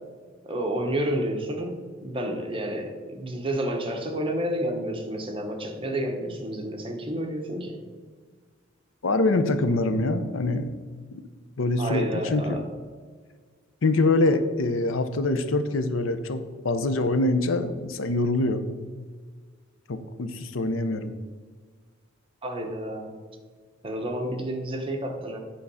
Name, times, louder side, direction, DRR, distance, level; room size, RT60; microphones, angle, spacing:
voice 1, 0.4-7.8 11.8-12.7 22.4-23.2 23.8-25.4, right 1 dB, 25° right, 2 dB, 1.1 m, -30 dB
voice 2, 9.0-10.8 11.1-11.2 11.6-12.6 13.8-16.4 16.6-18.6 19.9-21.1, left 2 dB, 80° left, 10 dB, 0.7 m, -24 dB
8.5 x 3.8 x 6.9 m, 1.5 s
head